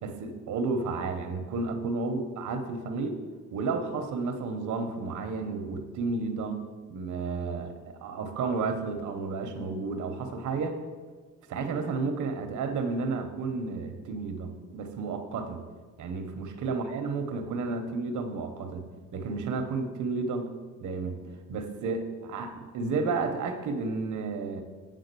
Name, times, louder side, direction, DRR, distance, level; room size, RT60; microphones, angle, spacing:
voice 1, 0.0-3.2 3.5-10.8 11.5-15.6 16.0-18.9 19.1-20.5 20.8-21.2 21.5-24.6, right 4 dB, 75° right, 6 dB, 1.0 m, -32 dB
8.4 x 3.8 x 6.7 m, 1.4 s
cardioid pair, 90°, 30 cm